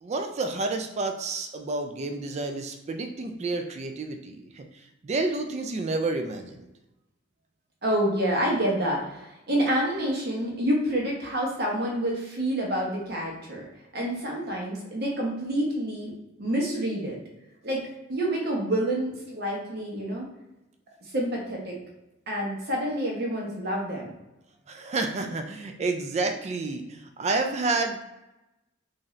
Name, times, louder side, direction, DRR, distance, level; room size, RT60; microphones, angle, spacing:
voice 1, 0.0-6.7 24.7-28.0, right 3 dB, 35° right, 5 dB, 0.3 m, -30 dB
voice 2, 7.8-13.7 13.9-16.1 16.4-17.2 17.6-17.8 18.1-20.3 21.0-21.8 22.3-24.1, right 1 dB, 55° right, -2 dB, 1.0 m, -28 dB
3.6 x 2.7 x 3.1 m, 0.97 s
head